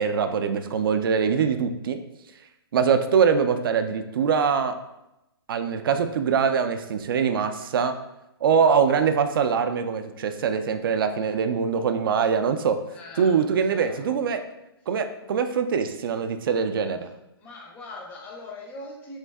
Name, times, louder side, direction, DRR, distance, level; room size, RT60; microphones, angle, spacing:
voice 1, 0.0-2.0 2.7-4.7 5.5-7.9 8.4-12.8 13.2-14.4 14.9-17.1, right 6 dB, 60° right, 8 dB, 0.4 m, -23 dB
voice 2, 12.9-14.1 17.4-19.2, left 2 dB, 10° left, -1 dB, 0.4 m, -41 dB
3.1 x 2.6 x 3.4 m, 0.90 s
hypercardioid pair, 160°, 13 cm